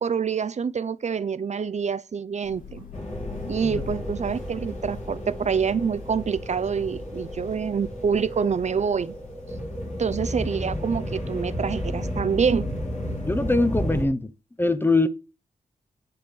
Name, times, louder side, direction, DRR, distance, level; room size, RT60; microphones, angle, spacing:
voice 1, 0.0-2.8 3.5-9.1 10.0-12.7, right 6 dB, 50° right, 0.6 m, -26 dB
Thunder / Rain, 2.4-10.1, left 5 dB, 70° left, 4.1 m, -44 dB
sound 1, 2.9-14.0, left 1 dB, 50° left, 4.1 m, -32 dB
voice 2, 13.3-14.3 14.6-15.1, left 2 dB, 15° left, 0.9 m, -22 dB
10.5 x 5.0 x 6.2 m
cardioid pair, 80°, 15 cm